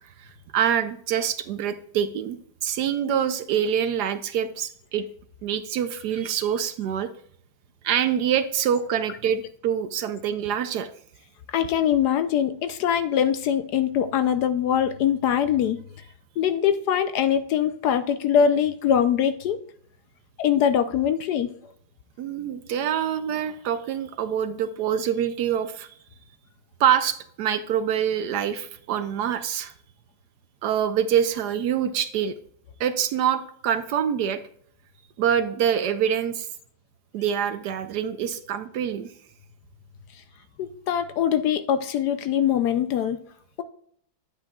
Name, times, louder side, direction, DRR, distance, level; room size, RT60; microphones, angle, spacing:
voice 1, 0.2-5.1 5.4-7.1 7.8-10.9 22.2-25.9 26.8-29.7 30.6-32.3 32.8-34.4 35.2-36.5 37.1-39.1, right 9 dB, 70° right, 11 dB, 1.0 m, -25 dB
voice 2, 11.5-15.8 16.4-19.6 20.4-21.5 40.6-43.2, left 9 dB, 70° left, 10 dB, 1.0 m, -23 dB
9.6 x 8.2 x 2.3 m, 0.63 s
omnidirectional pair, 2.0 m